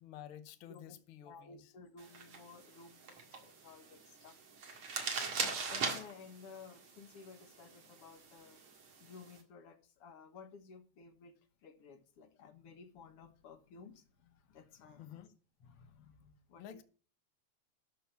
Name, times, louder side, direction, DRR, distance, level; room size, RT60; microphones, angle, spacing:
voice 1, 0.0-1.7 15.0-15.3 16.6-16.8, left 10 dB, 80° left, 1.1 m, -51 dB
voice 2, 0.7-4.4 5.3-8.6 9.0-15.2 15.6-16.8, left 5 dB, 55° left, 2.1 m, -55 dB
sound 1, 2.0-9.4, right 4 dB, 50° right, 2.6 m, -42 dB
13.0 x 4.7 x 6.8 m
omnidirectional pair, 3.4 m